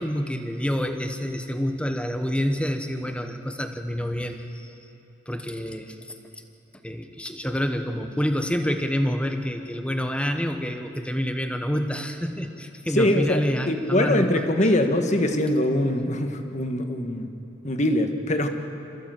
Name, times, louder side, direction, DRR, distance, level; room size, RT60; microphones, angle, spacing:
voice 1, 0.0-4.8 5.3-6.1 6.8-14.5, equal, 5° left, 6 dB, 1.1 m, -28 dB
voice 2, 12.9-17.3 17.6-18.5, left 1 dB, 35° left, 6 dB, 1.4 m, -23 dB
27.0 x 15.0 x 7.6 m, 2.8 s
head